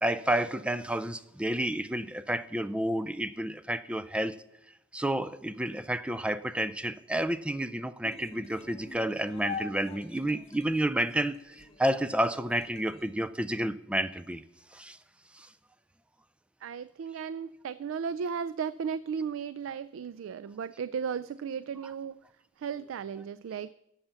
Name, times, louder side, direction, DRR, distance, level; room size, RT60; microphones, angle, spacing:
voice 1, 0.0-4.4 4.9-14.4 14.7-15.0 15.3-15.5, right 1 dB, 5° right, 14 dB, 0.3 m, -30 dB
sound 1, 8.0-13.1, left 5 dB, 30° left, 1.0 m, -45 dB
voice 2, 16.6-22.2 22.6-23.7, right 6 dB, 80° right, 16 dB, 0.3 m, -35 dB
11.0 x 7.1 x 6.8 m, 0.85 s
head